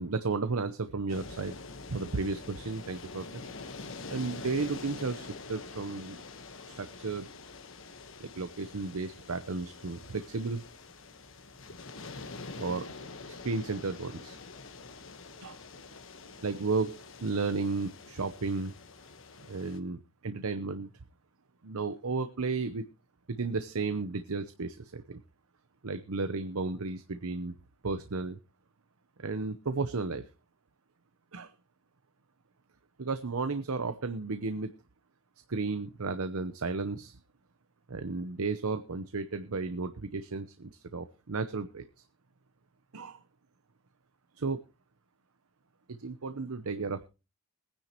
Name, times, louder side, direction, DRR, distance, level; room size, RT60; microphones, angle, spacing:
voice 1, 0.0-1.5 1.9-3.3 4.1-6.2 6.7-7.3 8.2-10.6 12.6-12.9 13.3-14.4 15.4-15.6 16.4-18.7 19.5-20.9 21.6-22.8 23.3-25.2 25.8-27.5 27.8-28.4 29.2-30.2 31.3-31.5 33.0-34.7 35.5-37.2 37.9-41.8 42.9-43.2 44.4-44.6 45.9-47.1, right 4 dB, 90° right, 10 dB, 0.8 m, -33 dB
sound 1, 1.1-19.8, left 3 dB, 65° left, 1.3 m, -46 dB
21.5 x 10.0 x 3.0 m, 0.30 s
head